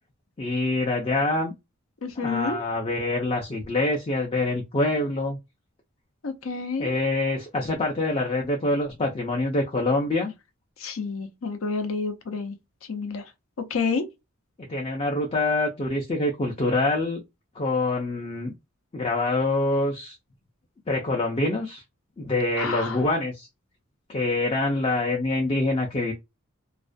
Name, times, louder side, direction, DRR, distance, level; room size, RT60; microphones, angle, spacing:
voice 1, 0.4-1.5 2.2-5.4 6.8-10.3 14.7-17.2 17.6-18.5 18.9-20.1 20.9-21.8 22.2-23.5 24.1-26.1, left 2 dB, 25° left, 0.4 m, -25 dB
voice 2, 2.0-2.6 6.2-6.9 10.8-12.6 12.9-13.3 13.7-14.1 22.6-23.0, left 4 dB, 75° left, 0.6 m, -29 dB
2.4 x 2.1 x 2.4 m
head